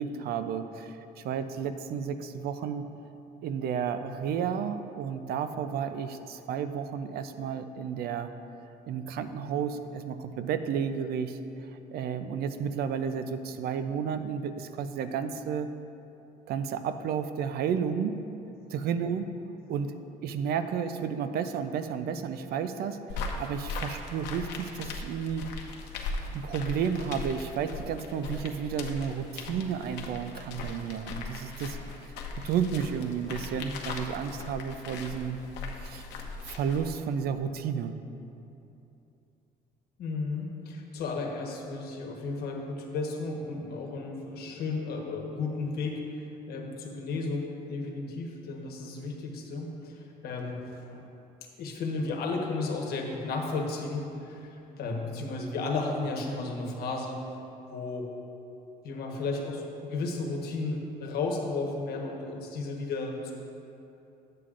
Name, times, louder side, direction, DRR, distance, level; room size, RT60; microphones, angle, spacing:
voice 1, 0.0-2.9 3.4-8.3 8.9-11.4 11.7-15.7 16.5-18.2 18.7-19.3 19.7-19.9 20.2-25.5 26.3-35.4 35.8-36.0 36.5-38.0, right 7 dB, 65° right, 10 dB, 0.5 m, -32 dB
sound 1, 23.1-37.0, left 3 dB, 90° left, 0.8 m, -39 dB
voice 2, 40.0-46.0 46.5-51.0 51.6-57.2 57.6-58.1 58.8-63.3, left 3 dB, 65° left, 1 dB, 1.2 m, -33 dB
11.5 x 7.6 x 2.5 m, 2.8 s
cardioid pair, 110°, 17 cm